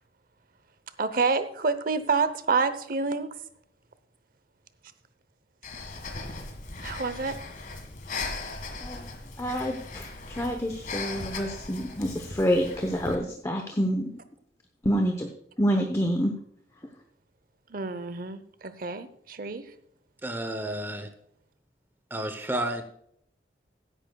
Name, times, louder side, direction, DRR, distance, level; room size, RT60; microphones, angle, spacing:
voice 1, 1.0-3.3 6.8-7.4 17.7-19.7, right 4 dB, 55° right, 13 dB, 0.7 m, -28 dB
Breathing, 5.6-13.1, left 3 dB, 50° left, 1.8 m, -38 dB
voice 2, 9.4-14.1 14.8-15.3 15.6-16.3, equal, 15° left, 4 dB, 0.8 m, -27 dB
voice 3, 20.2-21.1 22.1-22.8, right 1 dB, 10° right, 7 dB, 0.8 m, -31 dB
16.0 x 10.0 x 2.3 m, 0.70 s
head